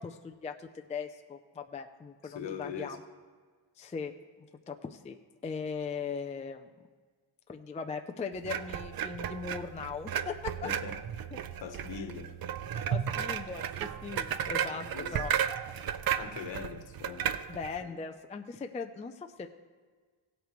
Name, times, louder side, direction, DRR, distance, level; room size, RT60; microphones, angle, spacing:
voice 1, 0.0-3.0 3.8-4.1 4.7-5.2 5.4-6.7 7.5-10.7 11.3-11.4 11.9-12.1 12.9-14.9 15.1-15.3 17.5-19.5, left 5 dB, 15° left, 0.3 m, -39 dB
voice 2, 2.2-3.0 10.6-11.0 11.6-12.4 14.7-15.2 16.2-17.3 17.8-17.9, left 6 dB, 60° left, 1.2 m, -41 dB
sound 1, 8.4-17.8, right 9 dB, 45° right, 0.5 m, -34 dB
17.0 x 8.2 x 3.1 m
cardioid pair, 130°, 49 cm